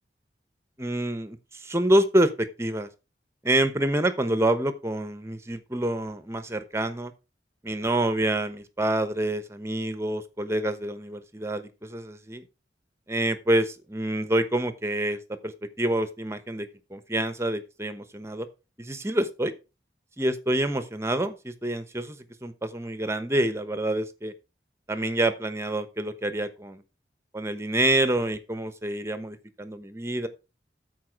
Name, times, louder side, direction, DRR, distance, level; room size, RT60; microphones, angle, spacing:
voice 1, 0.8-2.9 3.4-7.1 7.6-12.4 13.1-18.5 18.8-19.5 20.2-24.3 24.9-26.8 27.3-30.3, right 1 dB, 15° right, 11 dB, 1.0 m, -27 dB
13.0 x 4.8 x 4.7 m, 0.29 s
head